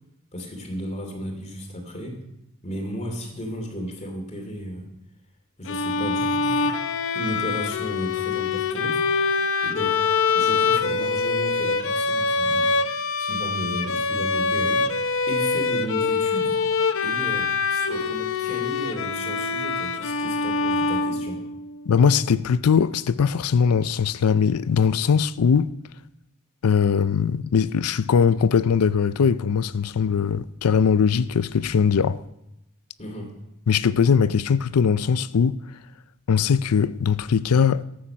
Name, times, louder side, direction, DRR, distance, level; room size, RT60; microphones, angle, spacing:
voice 1, 0.3-2.2 2.6-4.9 5.6-6.7 7.1-9.0 9.6-12.7 13.2-14.8 15.3-16.6 17.0-21.4 33.0-33.3, equal, 30° left, 2.6 m, -34 dB
Bowed string instrument, 5.7-21.7, left 4 dB, 60° left, 0.8 m, -24 dB
voice 2, 21.9-25.7 26.6-32.2 33.7-35.6 36.3-37.8, left 6 dB, 85° left, 0.5 m, -20 dB
14.0 x 8.8 x 5.7 m
head